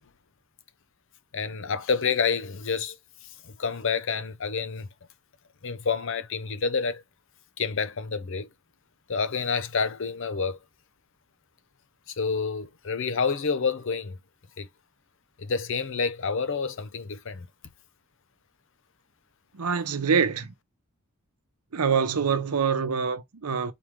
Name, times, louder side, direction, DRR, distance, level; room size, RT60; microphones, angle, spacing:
voice 1, 1.3-3.0 3.4-4.9 5.6-7.0 7.6-8.5 9.1-10.6 12.2-14.2 14.6-14.7 15.4-17.5, left 5 dB, 60° left, 0.7 m, -28 dB
voice 2, 19.5-20.5 21.7-23.7, right 6 dB, 85° right, 0.8 m, -25 dB
4.1 x 3.1 x 3.6 m
head